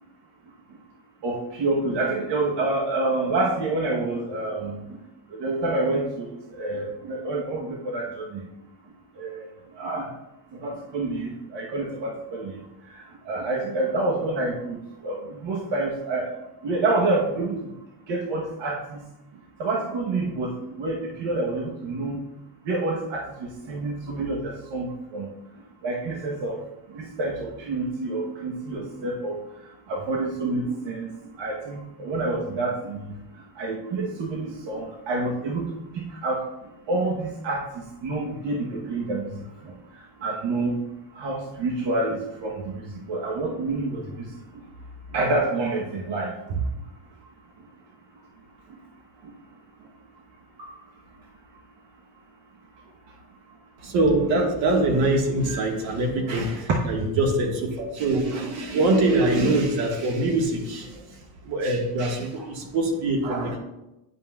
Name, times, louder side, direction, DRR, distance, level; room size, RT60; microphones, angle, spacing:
voice 1, 1.2-4.8 5.3-8.4 9.2-9.5 9.8-10.1 10.5-12.6 12.9-16.3 16.6-17.7 18.1-19.0 19.6-22.2 22.6-25.3 25.8-26.6 26.9-29.4 29.9-31.1 31.4-33.2 33.5-36.4 36.9-40.8 41.1-44.4 45.1-46.6 49.2-49.3 50.6-50.7, right 2 dB, 65° right, -2 dB, 1.1 m, -28 dB
voice 2, 53.8-61.0 61.4-63.6, right 2 dB, 85° right, 1 dB, 1.6 m, -23 dB
9.6 x 5.5 x 2.3 m, 0.94 s
cardioid pair, 125°, 45 cm